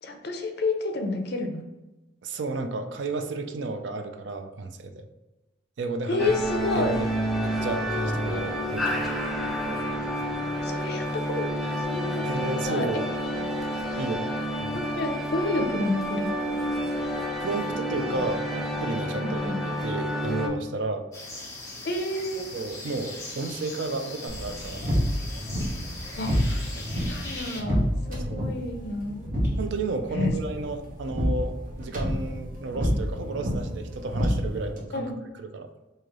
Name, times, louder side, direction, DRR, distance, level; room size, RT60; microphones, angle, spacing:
voice 1, 0.0-1.7 6.1-6.9 10.6-12.9 14.7-16.3 19.1-19.6 21.8-22.5 26.2-29.2 30.1-30.3 34.9-35.2, left 2 dB, 60° left, 4 dB, 0.6 m, -30 dB
voice 2, 2.2-5.1 5.8-6.3 6.7-7.1 7.4-9.1 12.2-13.1 14.0-14.3 14.6-14.9 17.4-19.5 19.8-21.1 22.5-24.8 28.2-28.5 29.6-35.7, right 3 dB, 70° right, 7 dB, 0.4 m, -32 dB
sound 1, 6.2-20.5, equal, ahead, 0.4 m, -29 dB
sound 2, 21.1-27.6, left 2 dB, 15° left, 0.9 m, -40 dB
sound 3, 24.3-34.8, equal, 45° right, 1.0 m, -29 dB
3.1 x 2.8 x 3.7 m, 1.1 s
head